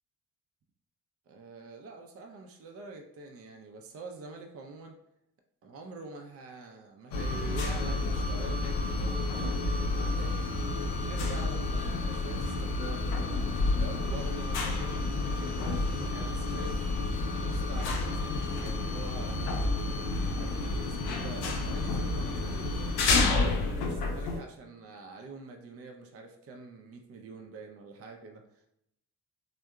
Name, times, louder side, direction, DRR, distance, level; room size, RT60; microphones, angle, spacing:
voice 1, 1.3-5.0 5.6-10.4 10.9-13.1 13.7-16.8 17.3-19.5 20.3-22.9 23.4-28.4, right 3 dB, 35° right, 3 dB, 0.5 m, -45 dB
sound 1, 7.1-24.4, left 3 dB, 60° left, 0.6 m, -30 dB
3.4 x 2.2 x 2.3 m, 0.79 s
figure-of-eight pair, 40°, 43 cm